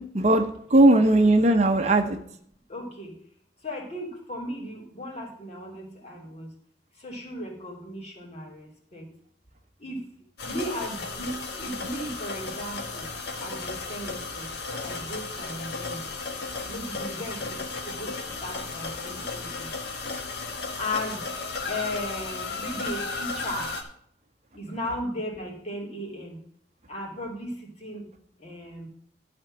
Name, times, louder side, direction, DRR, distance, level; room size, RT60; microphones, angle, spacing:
voice 1, 0.0-2.2, right 2 dB, 40° right, 6 dB, 0.8 m, -19 dB
voice 2, 2.7-3.1 3.6-6.5 7.0-9.0 9.8-10.0 10.4-13.1 13.4-14.5 14.8-16.0 16.7-17.6 17.9-18.1 18.4-19.7 20.8-21.2 21.7-23.7 24.5-26.4 26.9-28.0 28.4-28.9, left 1 dB, 40° left, -2 dB, 3.1 m, -36 dB
sound 1, 10.4-23.8, left 3 dB, 65° left, 1.5 m, -34 dB
12.0 x 4.4 x 7.6 m, 0.66 s
head